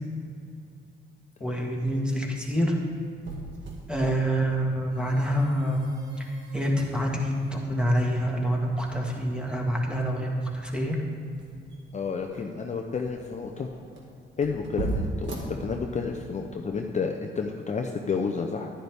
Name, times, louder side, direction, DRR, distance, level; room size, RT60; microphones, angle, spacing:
voice 1, 1.4-2.7 3.9-5.9 6.2-6.3 6.5-11.0, equal, 5° right, -1 dB, 1.7 m, -26 dB
sound 1, 2.6-16.3, right 2 dB, 65° right, 1.8 m, -40 dB
voice 2, 11.9-13.7 14.4-18.7, left 5 dB, 35° left, 3 dB, 0.7 m, -30 dB
10.5 x 10.0 x 3.5 m, 2.3 s
cardioid pair, 90°, 20 cm